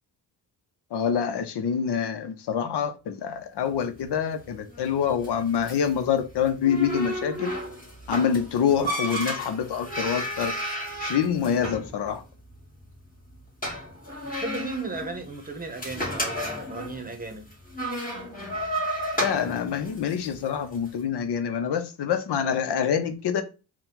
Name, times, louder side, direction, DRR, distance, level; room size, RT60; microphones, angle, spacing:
voice 1, 0.9-7.5 8.1-10.5 11.0-12.2 19.2-23.4, left 7 dB, 75° left, 0.7 m, -26 dB
sound 1, 3.6-20.9, equal, 20° left, 1.8 m, -34 dB
voice 2, 14.1-17.4, right 3 dB, 20° right, 0.9 m, -36 dB
4.4 x 2.3 x 3.7 m
cardioid pair, 90°, 40 cm